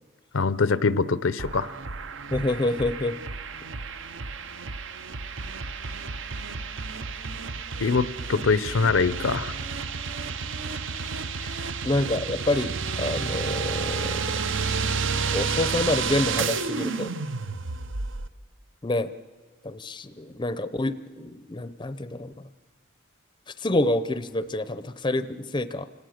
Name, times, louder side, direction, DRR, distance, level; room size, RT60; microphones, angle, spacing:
voice 1, 0.3-1.7 7.8-9.5, left 4 dB, 70° left, 16 dB, 0.7 m, -23 dB
sound 1, 1.4-18.3, right 5 dB, 65° right, 0.8 m, -31 dB
voice 2, 2.3-3.1 11.8-12.7 13.0-14.3 15.3-17.1 18.8-19.1 19.6-22.3 23.6-25.3 25.5-25.9, left 2 dB, 20° left, 12 dB, 0.6 m, -27 dB
28.5 x 18.0 x 6.5 m, 1.4 s
head